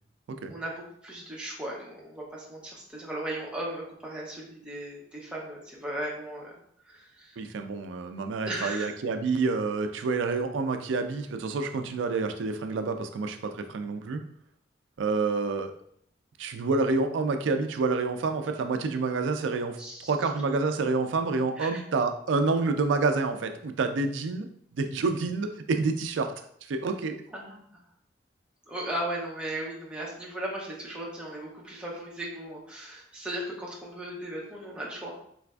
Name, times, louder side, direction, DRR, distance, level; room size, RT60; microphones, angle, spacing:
voice 1, 0.5-6.5 6.9-7.4 8.5-8.9 19.8-20.2 21.6-21.7 27.3-27.6 28.7-35.2, right 1 dB, 5° right, -4 dB, 0.7 m, -36 dB
voice 2, 7.4-14.2 15.0-15.7 16.4-19.8 20.1-24.5 24.8-26.3 26.7-27.2, right 3 dB, 85° right, 7 dB, 0.4 m, -28 dB
4.0 x 2.5 x 2.2 m, 0.66 s
head